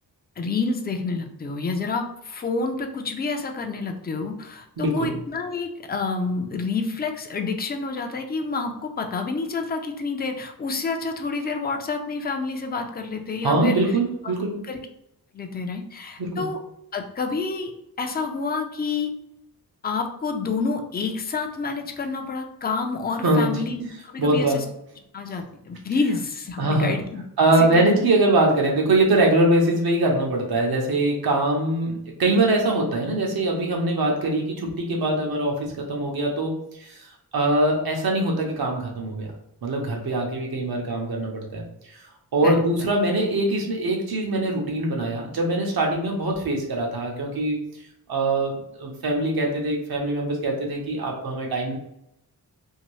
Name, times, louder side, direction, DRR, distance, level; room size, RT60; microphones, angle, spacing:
voice 1, 0.4-13.8 14.2-14.3 14.7-14.8 15.3-16.6 16.9-17.7 18.0-19.1 19.8-24.6 25.1-27.2 27.6-27.8 42.4-42.6, left 4 dB, 25° left, 4 dB, 0.4 m, -28 dB
voice 2, 4.8-5.1 13.4-14.6 16.2-16.4 23.2-23.7 24.2-24.6 26.6-26.9 27.4-37.1 37.3-39.3 39.6-42.0 42.3-47.6 48.1-51.7, right 2 dB, 75° right, 0 dB, 0.9 m, -23 dB
2.8 x 2.6 x 3.0 m, 0.79 s
wide cardioid pair, 95°, 37 cm